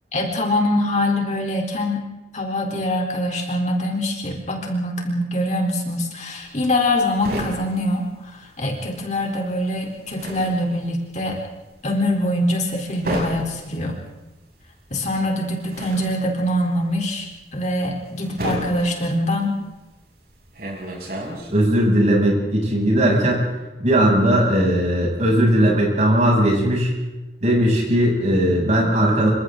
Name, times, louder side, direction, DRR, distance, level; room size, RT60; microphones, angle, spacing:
voice 1, 0.1-2.0 2.3-11.4 11.8-13.9 14.9-17.3 17.5-19.6, left 1 dB, 45° left, 1 dB, 3.8 m, -23 dB
sound 1, 6.4-8.9 9.2-21.8, equal, 60° right, 6.6 m, -33 dB
voice 2, 21.5-23.5 23.8-26.9 27.4-29.3, right 1 dB, 40° right, -2 dB, 7.6 m, -18 dB
28.0 x 25.5 x 3.9 m, 1.0 s
head